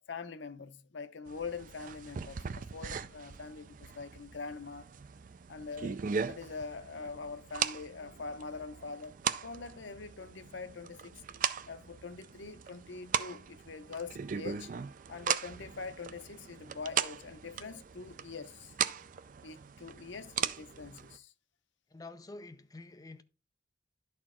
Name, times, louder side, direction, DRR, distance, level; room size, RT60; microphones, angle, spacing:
voice 1, 0.0-4.9 5.5-6.0 6.3-9.2 9.4-11.2 11.7-14.7 15.1-18.7 19.4-21.3, left 4 dB, 85° left, 0.6 m, -43 dB
sound 1, 1.3-21.2, right 7 dB, 45° right, 0.4 m, -39 dB
voice 2, 21.9-23.2, left 2 dB, 20° left, 0.5 m, -48 dB
11.0 x 4.4 x 3.6 m
head